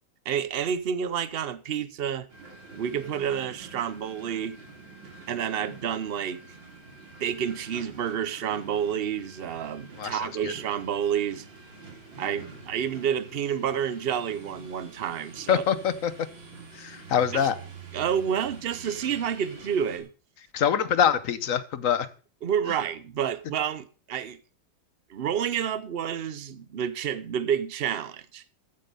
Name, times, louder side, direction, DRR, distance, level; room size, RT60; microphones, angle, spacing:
voice 1, 0.3-2.3 2.8-4.6 5.3-6.4 7.2-11.4 12.2-15.6 17.3-17.5 17.9-20.1 22.4-24.4 25.1-28.4, right 8 dB, 60° right, 0.6 m, -29 dB
sound 1, 2.3-20.0, right 4 dB, 90° right, 4.0 m, -47 dB
voice 2, 10.0-10.5 15.5-16.1 16.7-17.5 20.5-22.1, left 8 dB, 55° left, 1.1 m, -25 dB
14.5 x 7.7 x 5.4 m
omnidirectional pair, 2.0 m